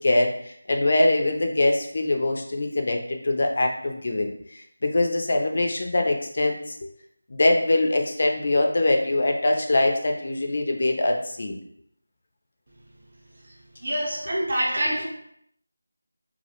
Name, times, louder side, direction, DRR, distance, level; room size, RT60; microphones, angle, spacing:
voice 1, 0.0-4.3 4.8-6.9 7.3-11.6, left 2 dB, 45° left, 3 dB, 0.4 m, -23 dB
voice 2, 13.8-15.1, right 1 dB, 45° right, -5 dB, 0.6 m, -25 dB
2.3 x 2.1 x 2.8 m, 0.69 s
figure-of-eight pair, 175°, 0 cm